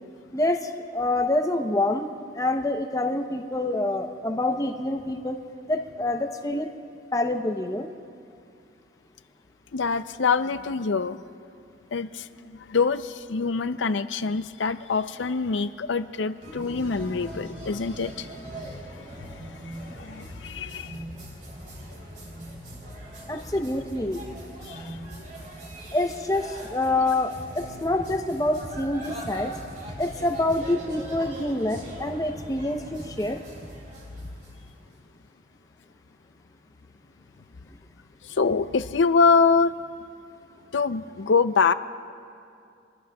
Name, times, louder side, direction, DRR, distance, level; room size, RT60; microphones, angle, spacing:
voice 1, 0.3-2.1 2.4-5.4 5.7-6.7 7.1-7.9 23.3-24.2 25.9-29.5 30.0-33.4, left 2 dB, 20° left, 4 dB, 0.7 m, -26 dB
voice 2, 9.7-11.2 11.9-18.3 19.2-21.0 24.7-25.2 38.2-39.7 40.7-41.7, left 5 dB, 80° left, 12 dB, 0.5 m, -25 dB
sound 1, 16.4-35.0, right 1 dB, 45° right, 3.3 m, -40 dB
26.5 x 20.5 x 2.3 m, 2.5 s
head